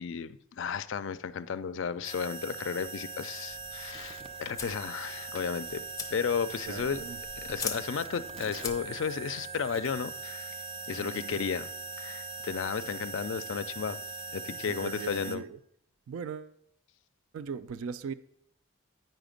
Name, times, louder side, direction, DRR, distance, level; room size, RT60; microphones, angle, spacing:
voice 1, 0.0-5.8 6.1-7.0 7.4-10.6 10.9-11.7 12.0-14.0 14.3-15.4, left 6 dB, 65° left, 0.4 m, -33 dB
sound 1, 2.0-15.4, right 4 dB, 25° right, 0.5 m, -41 dB
sound 2, 3.5-9.2, left 6 dB, 15° left, 0.7 m, -43 dB
voice 2, 6.7-7.2 11.0-11.4 14.7-15.6 16.1-16.6 17.3-18.1, right 6 dB, 85° right, 0.4 m, -39 dB
9.4 x 5.0 x 5.1 m
head